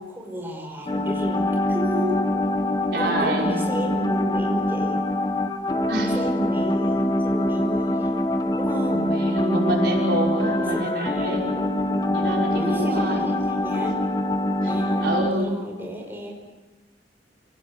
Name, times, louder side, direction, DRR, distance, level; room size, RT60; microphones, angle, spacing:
voice 1, 0.0-2.5 2.9-5.0 6.0-8.2 8.5-9.2 10.7-14.0 14.6-16.3, equal, 10° right, 0 dB, 5.6 m, -33 dB
sound 1, 0.9-15.3, left 1 dB, 25° left, 1.3 m, -24 dB
voice 2, 2.9-3.6 5.9-6.2 8.9-11.5 12.1-13.3 13.8-13.9 15.0-15.5, right 1 dB, 65° right, -1 dB, 5.8 m, -27 dB
29.0 x 18.5 x 8.5 m, 1.2 s
head